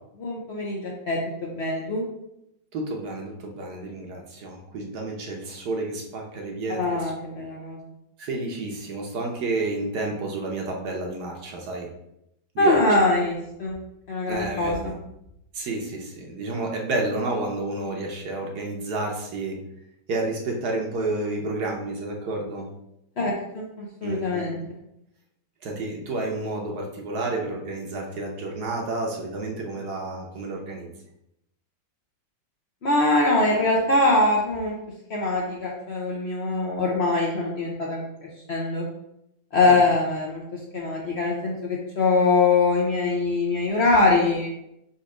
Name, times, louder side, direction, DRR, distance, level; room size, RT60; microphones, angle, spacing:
voice 1, 0.2-2.0 6.8-7.8 12.6-13.8 14.1-14.7 23.2-24.6 32.8-34.8 35.1-38.0 38.5-38.8 39.5-40.4 40.7-44.5, left 2 dB, 85° left, -3 dB, 0.5 m, -23 dB
voice 2, 2.7-7.1 8.2-11.9 12.5-12.8 14.3-14.9 15.5-19.6 20.1-22.7 24.0-24.4 25.6-30.9 39.6-39.8, right 2 dB, 65° right, 0 dB, 1.2 m, -30 dB
4.2 x 2.5 x 4.7 m, 0.82 s
omnidirectional pair, 2.0 m